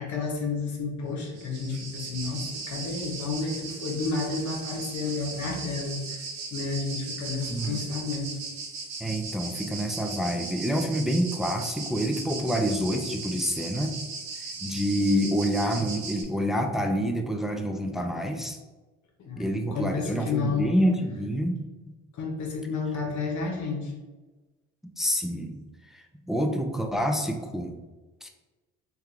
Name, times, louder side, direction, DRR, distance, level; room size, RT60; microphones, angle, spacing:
voice 1, 0.0-6.3 6.5-8.4 19.2-20.7 22.1-23.9, left 4 dB, 70° left, 0 dB, 1.1 m, -31 dB
sound 1, 1.2-16.2, right 4 dB, 65° right, 1.0 m, -38 dB
voice 2, 7.5-7.8 9.0-14.0 14.6-18.6 19.4-21.6 25.0-25.6 25.9-27.8 28.2-28.3, equal, ahead, 4 dB, 0.4 m, -27 dB
3.4 x 2.4 x 4.3 m, 1.2 s
cardioid pair, 90°, 30 cm